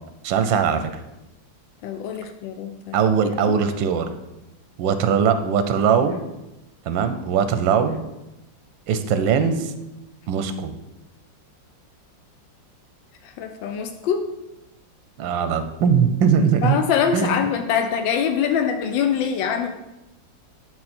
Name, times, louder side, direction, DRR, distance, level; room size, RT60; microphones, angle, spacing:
voice 1, 0.2-0.9 2.9-4.1 4.8-6.2 6.9-8.0 8.9-9.7 10.3-10.7 15.2-16.8 17.1-17.3, right 7 dB, 85° right, 9 dB, 1.4 m, -20 dB
voice 2, 1.8-3.0 3.5-3.6 13.2-14.3 16.6-19.8, left 7 dB, 85° left, 7 dB, 1.3 m, -24 dB
9.6 x 4.4 x 4.2 m, 0.95 s
omnidirectional pair, 2.0 m